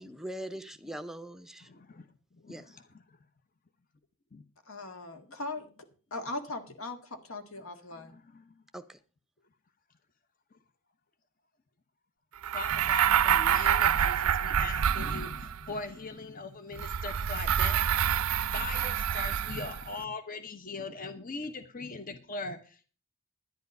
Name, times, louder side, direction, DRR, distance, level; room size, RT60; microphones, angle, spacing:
voice 1, 0.0-1.7 2.5-2.8 8.7-9.0, right 1 dB, ahead, 0.6 m, -42 dB
voice 2, 1.7-2.1 2.4-2.8 4.3-4.4 7.6-8.5 12.5-17.8 18.5-22.8, left 3 dB, 40° left, 0.9 m, -40 dB
voice 3, 4.7-5.7 6.1-8.1, left 2 dB, 70° left, 1.8 m, -39 dB
sound 1, 12.4-15.7 16.8-19.9, right 9 dB, 85° right, 0.5 m, -27 dB
10.5 x 10.5 x 5.3 m
head